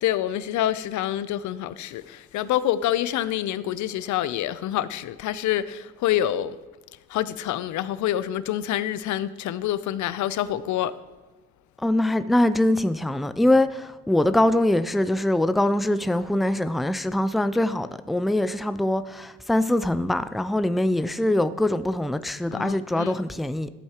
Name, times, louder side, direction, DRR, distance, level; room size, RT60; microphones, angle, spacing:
voice 1, 0.0-6.5 7.1-10.9 22.5-23.2, left 12 dB, 75° left, 0.5 m, -27 dB
voice 2, 11.8-23.7, left 1 dB, ahead, 0.3 m, -23 dB
14.0 x 8.1 x 2.9 m
cardioid pair, 90°, 30 cm